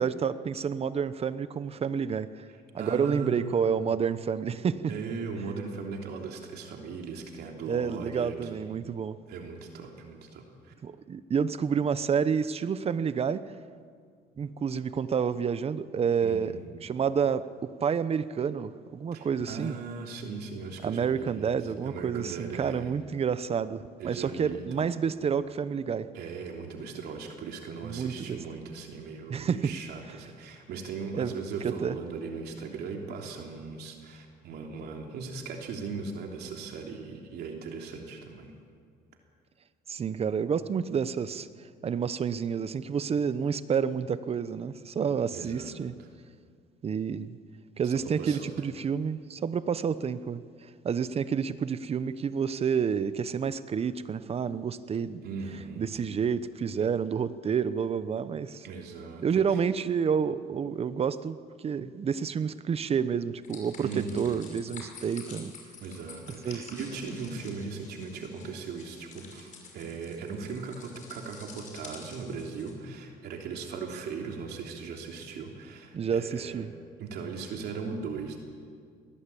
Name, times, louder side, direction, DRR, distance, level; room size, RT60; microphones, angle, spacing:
voice 1, 0.0-2.4 2.7-4.9 7.7-9.2 10.8-13.4 14.4-16.5 16.8-19.8 20.8-26.1 27.8-28.4 29.3-29.7 31.1-31.3 31.6-32.0 39.9-41.5 41.8-45.9 46.8-47.4 47.8-50.4 50.8-55.2 55.8-58.6 59.2-65.5 66.4-66.6 75.9-76.7, right 7 dB, 35° right, 14 dB, 0.9 m, -29 dB
voice 2, 2.5-3.7 4.9-8.5 9.3-10.7 16.2-16.6 19.1-23.0 24.0-25.0 26.1-38.5 45.3-46.1 47.8-48.5 55.2-55.9 58.6-59.6 63.8-64.4 65.8-76.7 77.0-78.4, right 5 dB, 70° right, 2 dB, 3.2 m, -38 dB
sound 1, 63.4-72.7, left 5 dB, 50° left, 5.9 m, -49 dB
20.5 x 17.5 x 8.5 m, 2.1 s
cardioid pair, 110°, 17 cm